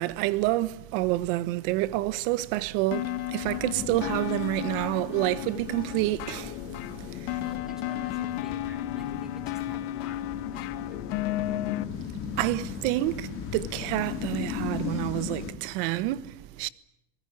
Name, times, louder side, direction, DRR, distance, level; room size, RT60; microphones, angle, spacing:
voice 1, 0.0-6.6 7.0-7.4 12.4-16.7, right 16 dB, 70° right, 1.4 m, -28 dB
sound 1, 2.9-11.8, left 14 dB, 85° left, 2.1 m, -34 dB
sound 2, 3.4-15.5, left 8 dB, 45° left, 4.6 m, -38 dB
voice 2, 7.4-11.8, equal, ahead, 4.1 m, -50 dB
26.5 x 20.0 x 8.4 m
supercardioid pair, 145°, 29 cm